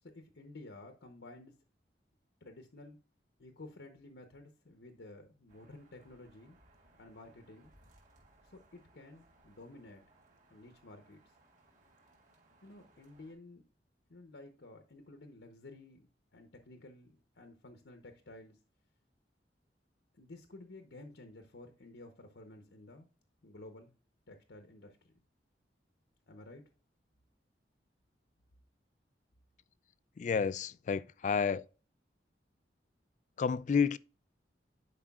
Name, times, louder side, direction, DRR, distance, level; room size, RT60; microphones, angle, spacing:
voice 1, 0.0-1.5 2.4-3.0 3.4-6.6 7.0-7.7 8.4-10.0 10.5-11.3 12.6-13.6 14.1-18.6 20.1-23.1 23.4-23.9 24.3-25.1 26.3-26.6, left 2 dB, 80° left, 0.9 m, -53 dB
sound 1, 5.5-13.3, right 2 dB, 45° right, 3.0 m, -66 dB
voice 2, 30.2-31.7 33.4-34.0, left 6 dB, 45° left, 0.3 m, -30 dB
11.0 x 5.0 x 2.3 m
head